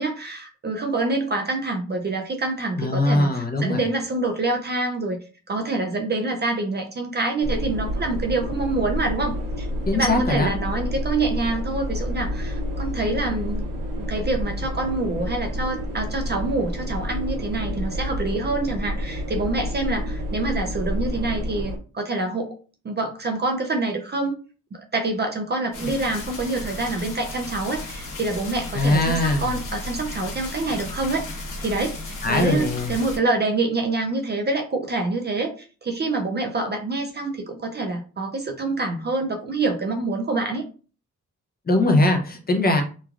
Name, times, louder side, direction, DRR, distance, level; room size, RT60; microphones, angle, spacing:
voice 1, 0.0-5.2 5.5-9.7 9.9-13.6 14.0-22.5 22.8-24.4 24.7-31.3 31.6-40.6, right 2 dB, 35° right, 3 dB, 0.4 m, -26 dB
voice 2, 2.8-3.8 9.9-10.5 25.8-25.9 28.7-29.5 32.2-33.0 41.7-42.8, left 2 dB, 30° left, 4 dB, 0.6 m, -21 dB
sound 1, 7.4-21.8, equal, 85° right, 0.9 m, -29 dB
sound 2, 25.7-33.2, left 2 dB, 80° left, 0.9 m, -34 dB
3.1 x 2.3 x 2.4 m, 0.37 s
wide cardioid pair, 130°, 31 cm